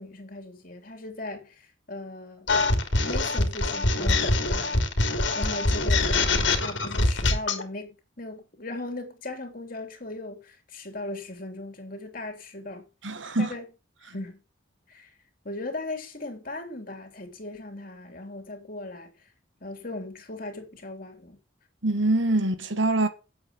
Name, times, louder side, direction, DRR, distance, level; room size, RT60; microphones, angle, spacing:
voice 1, 0.0-2.5 3.0-4.8 5.3-12.9 13.4-13.6 14.0-14.4 14.9-15.1 15.4-19.1 19.6-21.4, left 2 dB, 45° left, 3.4 m, -38 dB
sound 1, 2.5-7.6, left 2 dB, 70° left, 2.8 m, -24 dB
voice 2, 13.0-13.5 21.8-23.1, right 2 dB, 75° right, 1.8 m, -24 dB
10.0 x 8.0 x 7.3 m
head